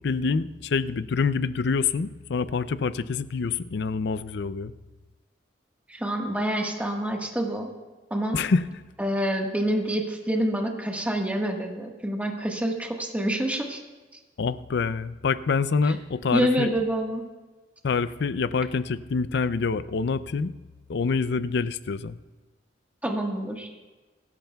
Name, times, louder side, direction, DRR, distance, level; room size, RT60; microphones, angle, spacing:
voice 1, 0.0-4.7 8.3-8.6 14.4-16.7 17.8-20.5 20.9-22.2, left 5 dB, 65° left, 15 dB, 0.5 m, -26 dB
voice 2, 5.9-7.7 8.1-8.4 9.0-13.8 15.8-15.9 16.3-17.2 23.0-23.7, right 1 dB, 10° right, 1 dB, 1.4 m, -27 dB
25.5 x 13.5 x 2.3 m, 1.2 s
head